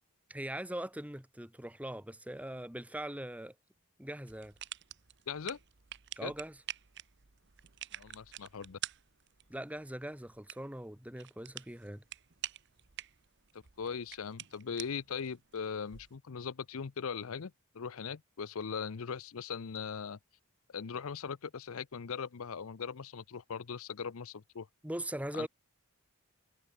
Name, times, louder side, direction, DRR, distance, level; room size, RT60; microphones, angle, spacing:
voice 1, 0.3-3.5 4.0-4.5 6.2-6.6 9.5-12.0 24.8-25.5, right 1 dB, 5° right, 1.3 m, -41 dB
sound 1, 4.3-16.2, right 12 dB, 50° right, 1.1 m, -48 dB
voice 2, 5.3-5.6 6.2-6.3 7.9-8.8 13.5-20.2 20.7-24.7 25.3-25.5, left 6 dB, 75° left, 0.6 m, -40 dB
head